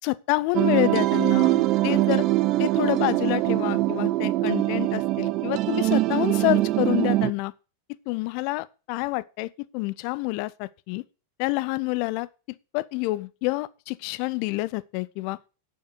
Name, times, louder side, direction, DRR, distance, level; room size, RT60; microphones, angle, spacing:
voice 1, 0.0-2.3 2.6-7.5 8.1-11.0 11.4-12.3 12.7-15.4, left 21 dB, 45° left, 0.6 m, -28 dB
sound 1, 0.5-7.3, right 17 dB, 40° right, 0.5 m, -23 dB
9.7 x 6.6 x 5.9 m
figure-of-eight pair, 90°, 0 cm